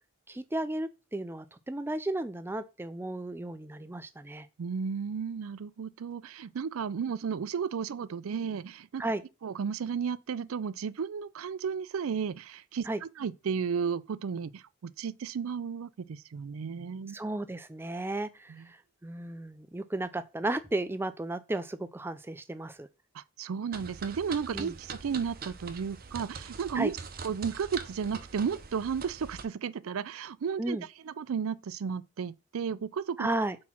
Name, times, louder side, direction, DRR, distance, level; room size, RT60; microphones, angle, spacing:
voice 1, 0.3-4.5 9.0-9.2 12.9-13.0 17.1-22.9 24.5-24.7 26.7-26.9 30.6-30.8 33.2-33.6, right 2 dB, 10° right, 0.4 m, -34 dB
voice 2, 4.6-9.0 9.4-12.9 13.2-17.2 18.5-18.6 23.1-27.0 27.2-30.8 31.0-33.3, right 6 dB, 75° right, 0.4 m, -33 dB
sound 1, 23.7-29.4, right 5 dB, 45° right, 0.7 m, -43 dB
4.3 x 4.2 x 5.7 m
head